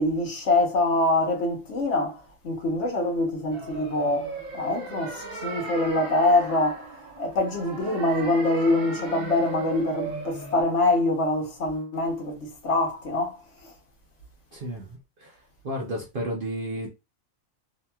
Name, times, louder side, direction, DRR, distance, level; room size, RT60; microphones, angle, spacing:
voice 1, 0.0-6.9 7.2-13.4 13.6-13.7, left 2 dB, 60° left, 1.1 m, -25 dB
sound 1, 3.5-10.6, right 3 dB, 85° right, 1.1 m, -37 dB
voice 2, 14.5-15.4 15.6-16.9, equal, 55° right, 0.6 m, -32 dB
2.8 x 2.8 x 2.2 m
omnidirectional pair, 1.4 m